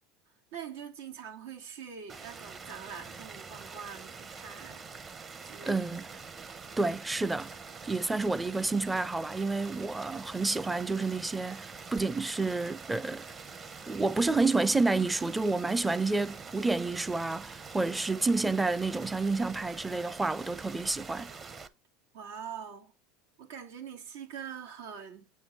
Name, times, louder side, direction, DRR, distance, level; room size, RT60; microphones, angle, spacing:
voice 1, 0.5-4.9 5.2-5.8 22.1-22.9 23.4-25.3, right 7 dB, 90° right, 2.3 m, -44 dB
sound 1, 2.1-21.7, right 5 dB, 30° right, 1.0 m, -45 dB
voice 2, 5.7-6.1 6.8-7.5 7.8-13.2 13.9-21.3, right 3 dB, 10° right, 0.5 m, -29 dB
8.7 x 4.6 x 4.4 m
supercardioid pair, 120°, 0 cm